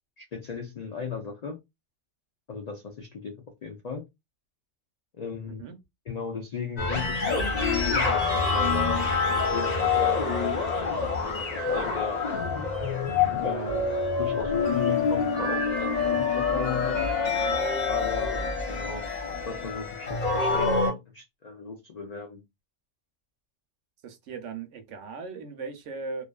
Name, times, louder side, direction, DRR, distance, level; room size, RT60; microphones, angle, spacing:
voice 1, 0.2-1.6 2.5-4.1 5.1-5.6 6.1-12.2 13.4-13.9 14.2-17.0 17.9-22.4, left 5 dB, 70° left, 0.3 m, -36 dB
sound 1, 6.8-20.9, left 4 dB, 40° left, 0.8 m, -26 dB
voice 2, 24.0-26.2, right 4 dB, 80° right, 1.0 m, -38 dB
2.5 x 2.4 x 2.2 m
omnidirectional pair, 1.2 m